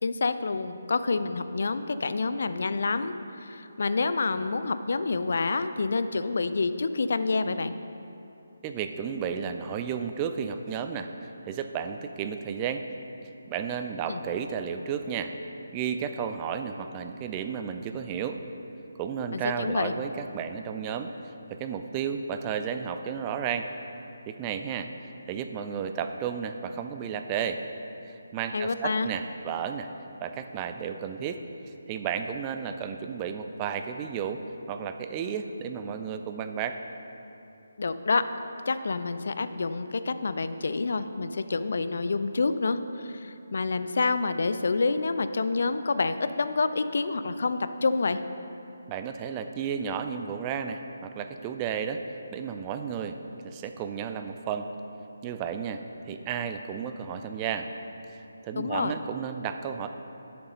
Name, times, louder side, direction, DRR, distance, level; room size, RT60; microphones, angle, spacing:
voice 1, 0.0-7.7 14.1-14.2 19.3-19.9 28.5-29.1 37.8-38.2 38.7-48.2 58.6-58.9, left 3 dB, 50° left, 11 dB, 0.4 m, -28 dB
voice 2, 8.6-12.8 13.5-15.3 15.7-18.4 19.0-21.1 21.5-23.7 24.3-24.9 25.2-27.6 28.1-29.9 30.2-31.4 31.9-34.4 34.7-36.8 48.9-52.0 52.3-53.2 53.4-54.7 55.2-57.7 58.4-59.9, right 7 dB, 20° right, 7 dB, 0.4 m, -33 dB
7.7 x 6.8 x 5.3 m, 2.8 s
figure-of-eight pair, 150°, 0 cm